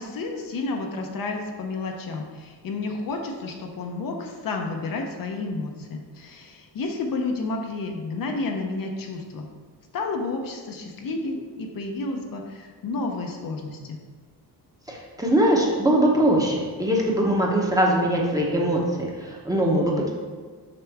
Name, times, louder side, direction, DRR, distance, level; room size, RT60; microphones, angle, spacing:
voice 1, 0.0-9.5 9.9-14.0, left 3 dB, 60° left, 2 dB, 0.9 m, -31 dB
voice 2, 14.9-20.1, right 1 dB, 10° right, -2 dB, 1.0 m, -22 dB
6.8 x 5.8 x 3.5 m, 1.5 s
wide cardioid pair, 160°, 39 cm